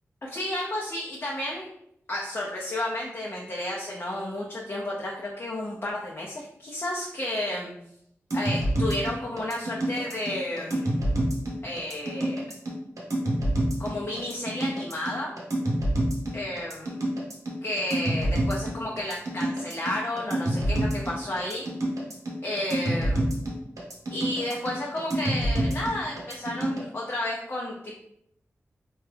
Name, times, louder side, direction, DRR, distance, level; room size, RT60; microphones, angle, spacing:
voice 1, 0.2-1.7 2.1-7.7 8.3-11.2 11.6-12.4 13.8-15.3 16.3-17.1 17.6-21.7 22.4-23.3 24.1-28.0, left 1 dB, 45° left, -4 dB, 0.6 m, -32 dB
sound 1, 8.3-26.8, right 1 dB, 80° right, 0.8 m, -27 dB
3.0 x 2.3 x 3.3 m, 0.75 s
cardioid pair, 55°, 6 cm